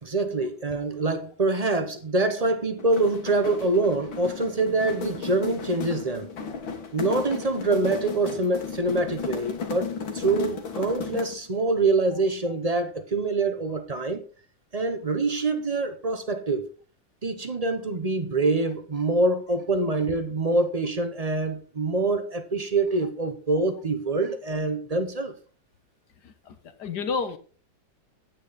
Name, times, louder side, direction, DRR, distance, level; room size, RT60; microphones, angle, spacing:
voice 1, 0.0-6.3 6.9-14.2 14.7-16.7 17.2-25.3, right 2 dB, 35° right, 0.6 m, -25 dB
sound 1, 2.8-11.5, left 5 dB, 90° left, 2.3 m, -35 dB
voice 2, 26.2-27.4, left 5 dB, 65° left, 1.6 m, -31 dB
9.2 x 8.9 x 4.1 m
omnidirectional pair, 2.0 m